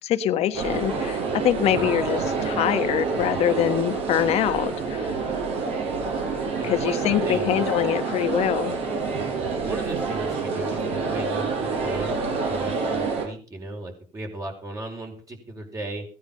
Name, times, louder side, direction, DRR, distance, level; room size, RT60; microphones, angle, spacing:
voice 1, 0.0-5.2 6.1-6.2 6.6-8.8, left 11 dB, 55° left, 10 dB, 1.3 m, -24 dB
sound 1, 0.5-13.3, right 4 dB, 55° right, 5.4 m, -27 dB
voice 2, 6.6-7.6 9.6-12.2 12.5-16.0, right 2 dB, 25° right, 3 dB, 4.8 m, -36 dB
16.5 x 10.0 x 5.5 m, 0.40 s
cardioid pair, 130°, 12 cm